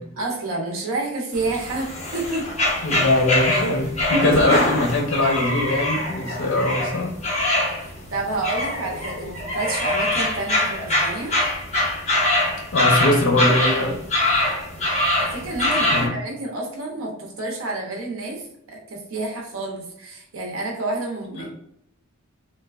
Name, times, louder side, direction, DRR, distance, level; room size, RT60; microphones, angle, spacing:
voice 1, 0.2-2.5 3.1-3.2 7.7-11.3 15.2-21.5, right 2 dB, 80° right, -1 dB, 0.7 m, -29 dB
sound 1, 1.3-16.1, left 1 dB, 35° left, 0.8 m, -24 dB
voice 2, 2.8-7.1 12.7-14.0 15.9-16.1 21.3-21.5, left 1 dB, 85° left, 0 dB, 0.6 m, -21 dB
3.2 x 2.2 x 2.3 m, 0.73 s
head